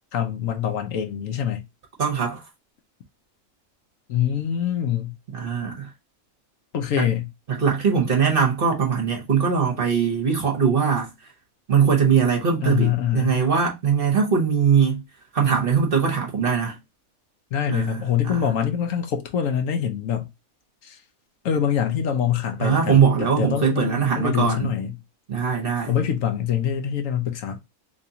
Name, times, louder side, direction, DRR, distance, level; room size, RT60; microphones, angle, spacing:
voice 1, 0.1-1.6 4.1-5.1 6.7-7.3 12.6-13.3 17.5-20.3 20.8-21.0 21.4-24.9 25.9-27.6, left 9 dB, 70° left, 1.0 m, -24 dB
voice 2, 2.0-2.4 5.3-5.9 7.5-11.1 11.7-15.0 15.3-16.8 17.7-18.4 22.6-24.7 25.3-26.0, right 6 dB, 45° right, 0.9 m, -21 dB
3.5 x 3.0 x 2.7 m
omnidirectional pair, 1.5 m